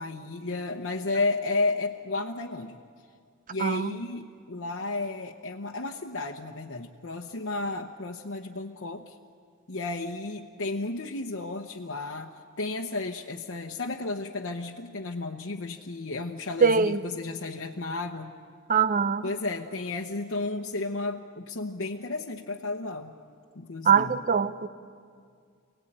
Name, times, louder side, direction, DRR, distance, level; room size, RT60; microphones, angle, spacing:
voice 1, 0.0-2.8 3.5-9.2 9.7-18.3 19.2-23.1 23.5-24.2, left 3 dB, 60° left, 1.0 m, -33 dB
voice 2, 3.6-4.0 16.6-17.0 18.7-19.3 23.9-24.7, right 6 dB, 40° right, 0.7 m, -22 dB
28.5 x 18.5 x 8.9 m
head